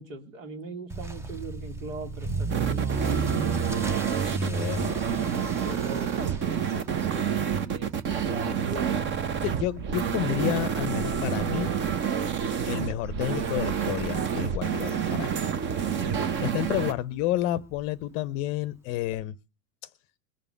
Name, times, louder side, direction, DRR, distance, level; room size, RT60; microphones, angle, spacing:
voice 1, 0.0-3.9 5.3-9.5 15.8-16.3, right 3 dB, 65° right, 8 dB, 2.6 m, -40 dB
Motor vehicle (road) / Accelerating revving vroom, 0.9-15.8 16.0-16.4 16.9-17.0 17.4-17.5 17.7-17.8 19.1-19.2, right 4 dB, 5° right, 0.6 m, -35 dB
sound 1, 2.5-16.9, right 8 dB, 25° right, 1.0 m, -28 dB
voice 2, 4.2-5.0 9.4-11.7 12.6-15.4 16.4-19.3 19.8-19.9, left 14 dB, 35° left, 17 dB, 0.7 m, -30 dB
21.0 x 6.9 x 6.6 m, 0.33 s
figure-of-eight pair, 90°, 43 cm